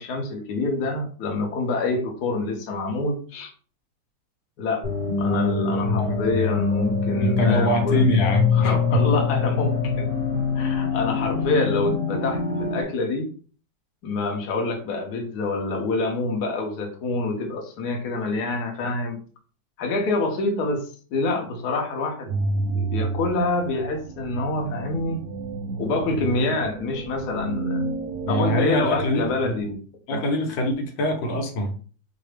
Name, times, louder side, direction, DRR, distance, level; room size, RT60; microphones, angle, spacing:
voice 1, 0.0-3.5 4.6-4.9 5.2-8.1 8.5-10.1 10.6-13.3 14.0-19.2 19.8-25.2 25.8-27.8 28.3-29.8 30.1-30.2, left 2 dB, 60° left, 2 dB, 1.4 m, -26 dB
sound 1, 4.8-12.8, left 6 dB, 20° left, 1.2 m, -24 dB
voice 2, 5.2-6.2 7.2-9.0 28.2-29.6 30.1-31.7, left 1 dB, 85° left, 3 dB, 1.6 m, -24 dB
sound 2, 22.3-29.7, right 3 dB, 60° right, 0.9 m, -30 dB
4.7 x 2.6 x 3.3 m, 0.40 s
omnidirectional pair, 2.0 m